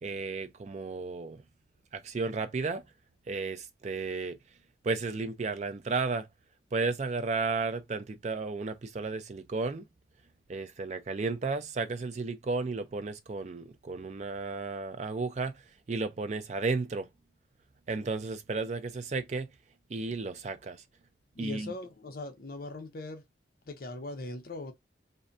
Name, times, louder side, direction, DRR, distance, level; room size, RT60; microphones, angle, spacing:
voice 1, 0.0-1.4 1.9-2.8 3.3-4.4 4.8-6.3 6.7-9.8 10.5-15.6 15.9-17.1 17.9-19.5 19.9-20.8 21.4-21.7, right 3 dB, 35° right, 0.4 m, -33 dB
voice 2, 21.3-23.2 23.7-24.7, left 2 dB, 50° left, 0.6 m, -40 dB
2.6 x 2.1 x 2.5 m
head